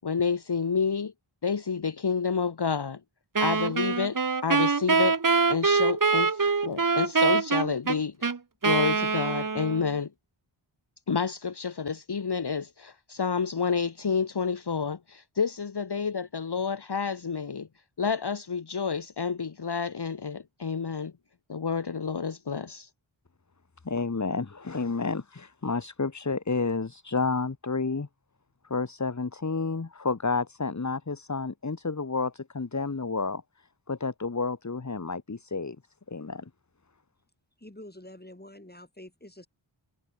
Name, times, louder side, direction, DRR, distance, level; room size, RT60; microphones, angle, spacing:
voice 1, 0.0-1.1 1.4-3.0 3.4-5.2 5.5-8.3 8.6-10.1 11.1-17.7 18.0-21.1 21.5-22.9, left 5 dB, 55° left, 1.2 m, -29 dB
Wind instrument woodwind instrument, 3.4-9.9, right 4 dB, 40° right, 1.2 m, -24 dB
voice 2, 23.8-28.1 28.6-35.8 36.1-36.5, left 4 dB, 35° left, 1.3 m, -30 dB
voice 3, 37.6-39.5, left 1 dB, 20° left, 7.8 m, -47 dB
wide cardioid pair, 45°, 49 cm